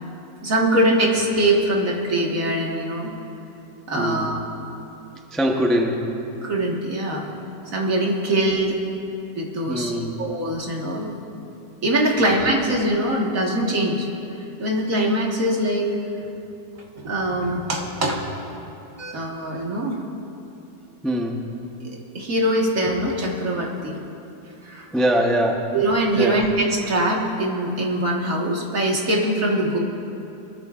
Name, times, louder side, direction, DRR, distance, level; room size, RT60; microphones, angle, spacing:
voice 1, 0.4-3.1 3.9-4.4 6.4-7.3 7.7-8.8 9.4-9.9 10.2-11.1 11.8-14.1 14.6-16.0 17.0-18.3 19.0-20.0 21.8-24.0 24.6-24.9 25.7-29.8, right 1 dB, 50° right, -2 dB, 1.9 m, -22 dB
voice 2, 3.9-4.4 5.3-6.2 9.7-10.1 12.2-12.3 21.0-21.5 24.9-25.7 26.2-26.4, equal, ahead, 0 dB, 0.5 m, -23 dB
23.0 x 13.5 x 2.5 m, 2.9 s
omnidirectional pair, 1.9 m